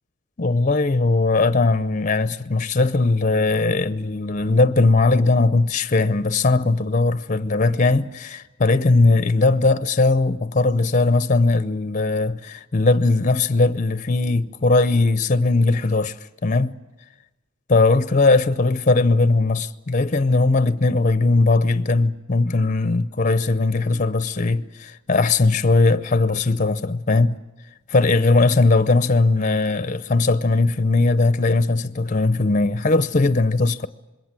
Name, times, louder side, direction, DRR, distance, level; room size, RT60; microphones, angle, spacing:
voice 1, 0.4-16.2 16.4-16.8 17.7-27.4 27.9-33.9, left 3 dB, 40° left, 0.7 m, -19 dB
26.0 x 21.5 x 7.6 m
head